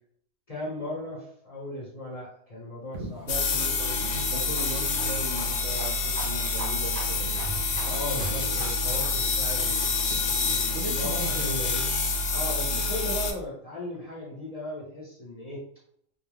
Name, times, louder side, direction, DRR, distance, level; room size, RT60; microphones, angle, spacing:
voice 1, 0.5-3.3 7.9-11.8 12.3-15.6, left 1 dB, 35° left, -6 dB, 0.6 m, -37 dB
sound 1, 2.9-10.1, right 2 dB, 50° right, 0.5 m, -42 dB
voice 2, 3.2-7.4 7.8-8.5 9.7-9.8 10.7-11.6 12.7-12.8, right 2 dB, 70° right, 2 dB, 0.8 m, -38 dB
sound 2, 3.3-13.3, left 3 dB, 75° left, 0.9 m, -27 dB
2.3 x 2.2 x 3.3 m, 0.67 s
omnidirectional pair, 1.4 m